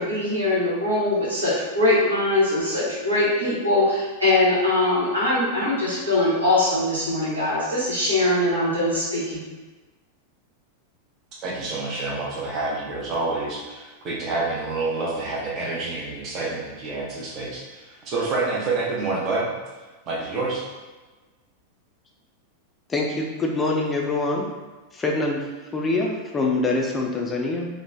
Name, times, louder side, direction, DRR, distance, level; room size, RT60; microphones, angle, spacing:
voice 1, 0.0-9.4, left 2 dB, 80° right, -7 dB, 1.0 m, -22 dB
voice 2, 11.4-19.5 20.1-20.6, right 3 dB, 35° right, -4 dB, 0.7 m, -28 dB
voice 3, 22.9-24.5 24.9-27.7, left 2 dB, 20° left, 0 dB, 0.3 m, -25 dB
3.0 x 2.1 x 2.4 m, 1.2 s
figure-of-eight pair, 90°, 0 cm